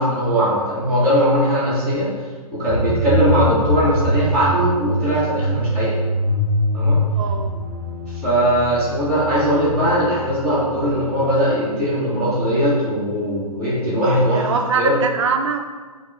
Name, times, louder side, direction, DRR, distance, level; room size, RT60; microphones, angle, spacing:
voice 1, 0.0-2.1 2.5-6.0 6.7-7.0 8.2-15.0, equal, 10° left, -12 dB, 0.6 m, -19 dB
sound 1, 2.7-11.5, equal, 15° right, 1.2 m, -24 dB
voice 2, 7.1-7.6 14.3-15.6, right 5 dB, 50° right, 5 dB, 0.4 m, -23 dB
4.2 x 2.4 x 3.0 m, 1.4 s
hypercardioid pair, 165°, 20 cm